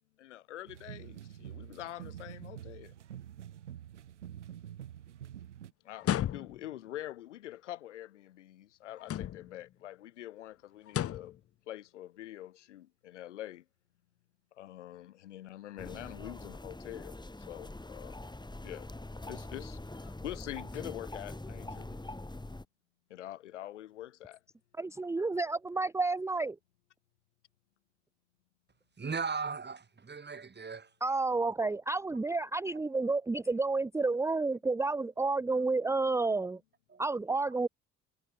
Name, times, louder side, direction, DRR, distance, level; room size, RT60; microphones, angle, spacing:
voice 1, 0.2-2.9 5.8-11.4 11.7-13.6 14.6-18.2 18.6-18.9 19.3-22.0 23.1-24.4, left 13 dB, 85° left, 2.8 m, -45 dB
sound 1, 0.7-5.7, right 11 dB, 85° right, 2.6 m, -47 dB
sound 2, 6.0-6.8 9.0-9.6 10.9-11.4, left 11 dB, 40° left, 0.8 m, -34 dB
sound 3, 15.8-22.7, left 2 dB, 10° left, 5.6 m, -44 dB
voice 2, 24.8-26.6 31.0-36.6 37.0-37.7, right 3 dB, 10° right, 0.5 m, -30 dB
voice 3, 29.0-30.9 36.9-37.0, right 5 dB, 30° right, 2.8 m, -37 dB
figure-of-eight pair, 50°, 35 cm